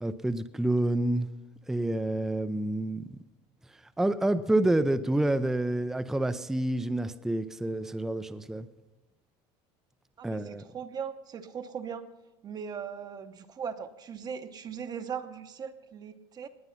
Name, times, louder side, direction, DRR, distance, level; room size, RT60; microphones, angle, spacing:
voice 1, 0.0-1.3 1.7-3.2 4.0-8.7 10.2-10.6, right 1 dB, 5° right, 11 dB, 0.4 m, -28 dB
voice 2, 10.2-12.1 12.4-16.5, right 7 dB, 25° right, 8 dB, 0.8 m, -39 dB
19.0 x 9.4 x 5.7 m, 1.0 s
cardioid pair, 145°, 15 cm